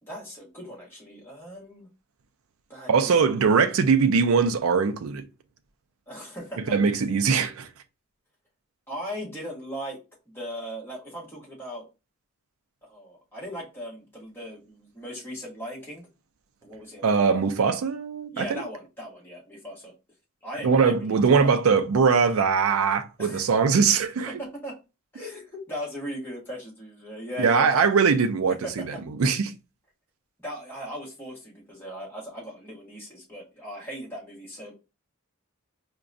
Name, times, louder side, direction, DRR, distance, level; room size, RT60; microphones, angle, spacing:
voice 1, 0.1-1.9 2.7-3.3 6.1-6.7 8.9-10.0 10.3-11.8 12.8-16.1 16.6-17.5 18.3-19.9 20.4-21.6 23.2-23.4 24.3-24.8 25.1-27.9 28.6-28.9 30.4-34.7, equal, 10° left, 1.2 m, -38 dB
voice 2, 2.9-5.2 6.7-7.7 17.0-18.6 20.6-24.3 27.4-28.5 28.9-29.5, right 5 dB, 65° right, 0.4 m, -21 dB
4.7 x 2.2 x 2.5 m
head